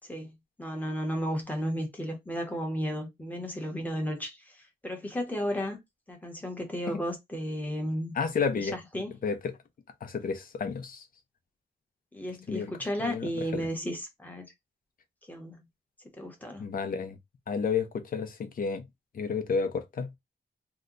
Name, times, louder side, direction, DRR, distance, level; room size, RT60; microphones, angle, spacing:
voice 1, 0.6-5.8 6.1-8.1 8.5-9.1 12.1-14.5 15.3-15.6 16.2-16.6, equal, 10° left, 0.9 m, -33 dB
voice 2, 8.1-8.7 9.2-9.5 10.0-11.0 12.5-12.7 13.0-13.7 16.6-17.2 17.5-18.8 19.1-20.2, left 5 dB, 55° left, 0.6 m, -31 dB
2.8 x 2.1 x 3.6 m
wide cardioid pair, 160°, 18 cm